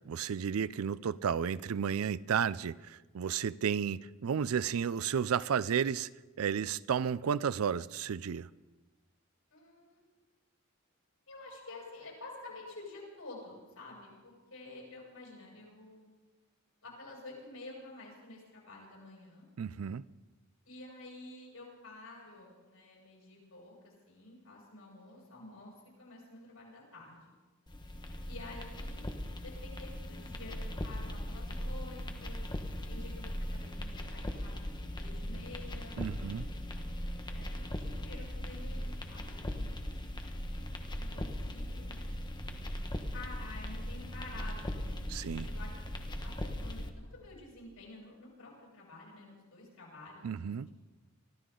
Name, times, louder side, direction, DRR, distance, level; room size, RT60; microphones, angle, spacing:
voice 1, 0.1-6.1 6.4-8.5 19.6-20.0 36.0-36.5 45.1-45.5 50.2-50.7, right 7 dB, 85° right, 0.4 m, -32 dB
voice 2, 9.5-10.0 11.3-16.1 16.8-19.4 20.7-27.3 28.3-29.1 29.4-32.4 32.9-34.6 35.0-36.3 37.0-39.9 41.0-42.1 43.1-45.0 45.2-45.7 46.2-50.3 50.6-50.7, left 2 dB, 90° left, 7.2 m, -50 dB
sound 1, 27.7-46.9, equal, 20° left, 1.2 m, -39 dB
24.0 x 14.5 x 3.8 m
head